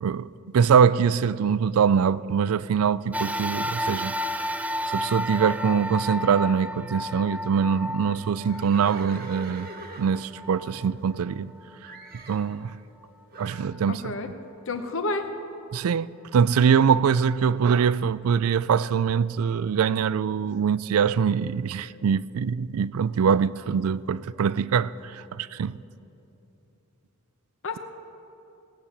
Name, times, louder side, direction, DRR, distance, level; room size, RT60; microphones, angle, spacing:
voice 1, 0.0-4.1 4.9-9.7 10.0-11.5 12.3-12.8 13.4-14.1 15.7-16.1 16.3-25.8, right 7 dB, 75° right, 0.4 m, -23 dB
sound 1, 3.1-11.7 12.3-12.4 13.6-13.7, left 1 dB, 5° right, 0.4 m, -32 dB
Livestock farm animals working animals, 8.4-11.5 11.8-12.5 13.3-13.7, right 2 dB, 45° right, 1.3 m, -43 dB
voice 2, 13.9-14.3 14.7-15.3 27.6-27.8, left 3 dB, 60° left, 1.0 m, -29 dB
18.0 x 8.2 x 7.2 m
head